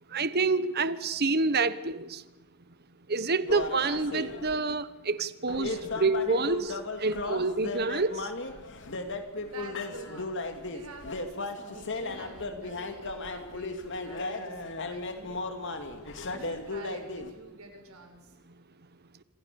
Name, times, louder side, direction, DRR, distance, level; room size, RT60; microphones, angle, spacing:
voice 1, 0.1-2.2 3.1-8.3, right 3 dB, 45° right, 1.1 m, -28 dB
sound 1, 3.5-4.6 5.5-17.3, left 3 dB, 55° left, 2.9 m, -36 dB
voice 2, 9.4-10.4 10.7-18.4, right 2 dB, 70° right, 6.6 m, -48 dB
27.5 x 27.0 x 7.1 m
head